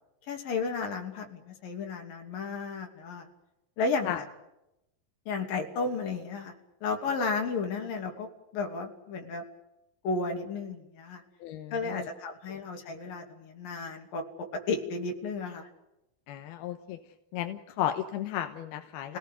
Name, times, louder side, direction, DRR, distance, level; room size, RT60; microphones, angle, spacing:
voice 1, 0.3-3.3 3.8-4.3 5.3-6.5 6.8-8.3 8.5-9.4 10.0-11.2 11.7-15.7 19.1-19.2, left 4 dB, 65° left, 3 dB, 4.5 m, -33 dB
voice 2, 11.4-12.1 12.5-12.6 16.3-17.0 17.3-19.2, left 11 dB, 85° left, 7 dB, 3.0 m, -34 dB
28.5 x 18.0 x 8.2 m, 0.90 s
omnidirectional pair, 4.4 m